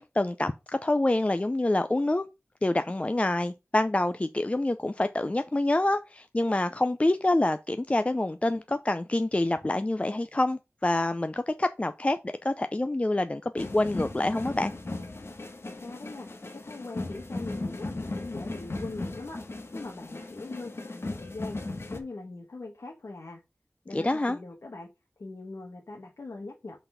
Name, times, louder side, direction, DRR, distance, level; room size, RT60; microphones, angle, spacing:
voice 1, 0.0-2.2 2.6-14.7 23.9-24.4, left 1 dB, 25° left, 0.4 m, -27 dB
sound 1, 13.6-22.0, left 2 dB, 60° left, 1.2 m, -37 dB
voice 2, 15.6-19.4 19.7-21.6 21.9-23.4 23.8-24.9 25.2-26.8, left 3 dB, 85° left, 1.3 m, -41 dB
5.6 x 4.1 x 5.5 m
wide cardioid pair, 60°, 5 cm